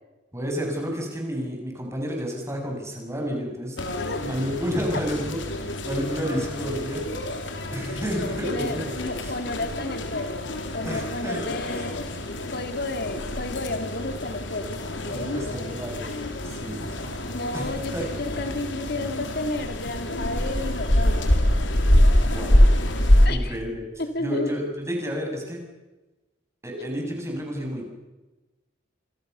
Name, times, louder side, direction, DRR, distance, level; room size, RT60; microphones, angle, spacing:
voice 1, 0.3-7.1 7.7-9.4 10.8-11.5 13.0-13.2 15.1-17.1 17.5-18.0 22.2-22.6 23.3-23.9 24.2-25.6 26.6-27.9, equal, 15° right, 1 dB, 7.6 m, -31 dB
sound 1, 3.8-23.3, left 1 dB, 85° left, 3.8 m, -25 dB
voice 2, 3.9-4.3 8.4-12.0 12.5-15.8 17.3-21.3 23.2-23.6 24.0-24.6, left 2 dB, 60° left, 8 dB, 2.5 m, -32 dB
27.0 x 27.0 x 6.9 m, 1.1 s
head